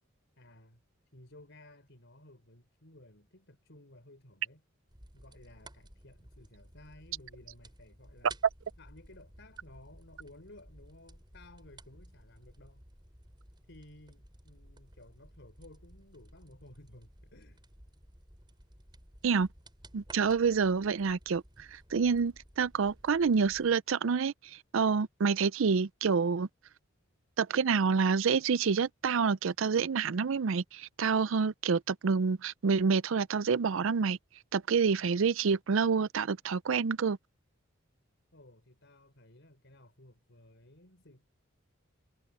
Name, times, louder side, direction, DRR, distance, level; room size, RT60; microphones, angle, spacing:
voice 1, 0.4-0.8 1.1-4.6 5.1-8.4 8.8-12.8 13.7-17.6 38.3-41.3, left 1 dB, 60° left, 5.2 m, -56 dB
sound 1, 4.9-23.7, right 1 dB, 20° right, 5.9 m, -56 dB
voice 2, 19.9-24.3 24.7-26.5 27.4-34.2 34.5-37.2, right 5 dB, 65° right, 0.5 m, -28 dB
head